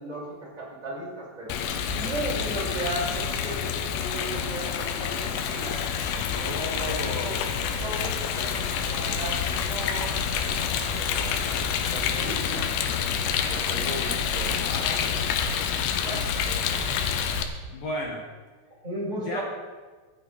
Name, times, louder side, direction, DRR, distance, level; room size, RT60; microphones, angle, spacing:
voice 1, 0.0-5.8 6.8-7.5 7.8-10.2 10.9-12.7 13.5-15.1 16.4-17.0 18.8-19.4, right 1 dB, 10° right, -6 dB, 4.5 m, -36 dB
Rain, 1.5-17.4, left 7 dB, 80° left, 3.4 m, -28 dB
voice 2, 6.3-7.6 14.5-15.4 15.8-16.5 17.7-18.2 19.3-19.4, left 1 dB, 65° left, 0 dB, 2.3 m, -35 dB
24.5 x 8.5 x 4.2 m, 1.4 s
omnidirectional pair, 5.7 m